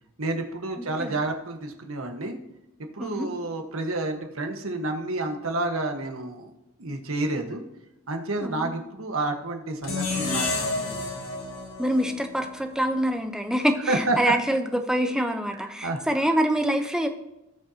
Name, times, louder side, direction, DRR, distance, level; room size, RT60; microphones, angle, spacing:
voice 1, 0.2-2.3 2.9-6.5 6.8-7.6 8.1-11.1 13.9-14.2 15.8-16.0, right 2 dB, 80° right, 4 dB, 1.5 m, -29 dB
voice 2, 0.8-1.1 3.0-3.3 8.4-8.7 11.8-17.1, equal, 5° right, 5 dB, 0.8 m, -25 dB
sound 1, 9.8-13.0, left 3 dB, 90° left, 4.0 m, -30 dB
18.0 x 6.5 x 2.9 m, 0.93 s
head